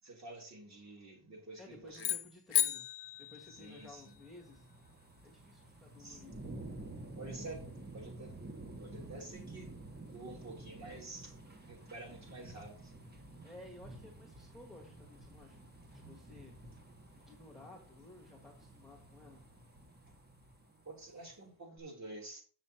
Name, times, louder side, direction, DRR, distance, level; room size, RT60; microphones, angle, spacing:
voice 1, 0.0-2.1 3.5-4.2 6.0-6.2 7.2-8.3 8.8-9.7 10.1-11.4 11.7-12.9 20.8-22.4, right 2 dB, 35° right, 3.2 m, -49 dB
voice 2, 1.6-2.9 3.2-4.7 5.2-6.4 13.4-16.6 17.2-19.4, left 2 dB, ahead, 1.5 m, -55 dB
sound 1, 1.9-4.3, left 12 dB, 65° left, 1.0 m, -35 dB
sound 2, 3.2-21.3 21.8-21.9, right 2 dB, 20° right, 1.5 m, -51 dB
8.2 x 6.4 x 4.4 m
wide cardioid pair, 160°, 45 cm